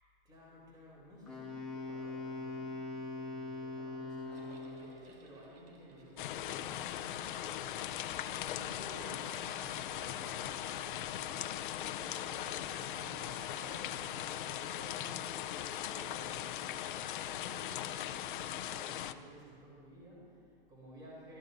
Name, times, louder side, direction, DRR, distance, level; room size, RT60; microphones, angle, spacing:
voice 1, 0.2-16.7 17.2-21.4, equal, 15° right, -6 dB, 3.4 m, -54 dB
Wind instrument woodwind instrument, 1.3-5.0, left 2 dB, ahead, 1.5 m, -42 dB
sound 1, 4.3-15.3, right 4 dB, 80° right, 2.0 m, -59 dB
sound 2, 6.2-19.1, left 12 dB, 55° left, 0.6 m, -39 dB
22.0 x 13.5 x 2.7 m, 2.4 s
supercardioid pair, 150°, 30 cm